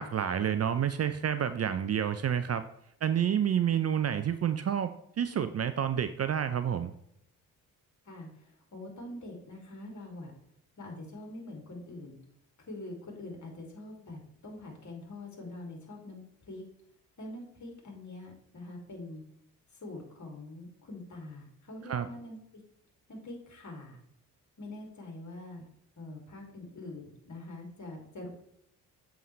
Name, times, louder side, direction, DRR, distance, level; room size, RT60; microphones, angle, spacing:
voice 1, 0.0-2.6 3.0-6.9 21.9-22.1, right 9 dB, 35° right, 11 dB, 0.5 m, -29 dB
voice 2, 8.0-10.3 10.8-12.2 12.7-16.6 17.2-19.2 19.7-22.6 23.1-24.0 24.6-25.7 26.0-28.3, left 2 dB, 40° left, 0 dB, 2.7 m, -44 dB
7.0 x 5.5 x 3.2 m, 0.73 s
hypercardioid pair, 40°, 43 cm